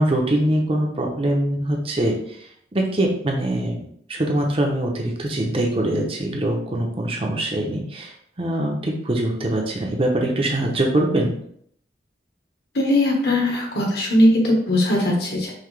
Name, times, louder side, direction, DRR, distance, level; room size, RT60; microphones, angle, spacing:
voice 1, 0.0-3.8 4.1-11.3, right 1 dB, 30° right, 0 dB, 0.7 m, -23 dB
voice 2, 12.7-15.5, left 1 dB, 60° left, -1 dB, 1.3 m, -19 dB
5.7 x 2.8 x 3.3 m, 0.66 s
head